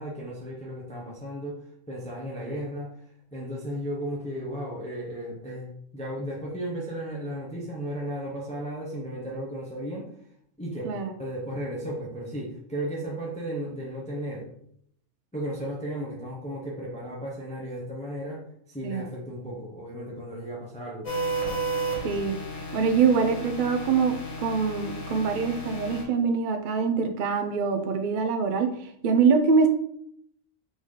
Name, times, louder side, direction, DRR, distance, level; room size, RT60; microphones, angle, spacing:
voice 1, 0.0-1.6 1.9-2.9 3.3-10.1 10.6-14.5 15.3-21.1, right 1 dB, 5° left, -3 dB, 0.8 m, -35 dB
sound 1, 21.0-26.0, right 2 dB, 65° left, 1.6 m, -33 dB
voice 2, 22.0-22.4 22.7-28.7 29.0-29.7, right 5 dB, 55° right, 7 dB, 0.6 m, -24 dB
3.9 x 3.8 x 3.2 m, 0.68 s
omnidirectional pair, 1.3 m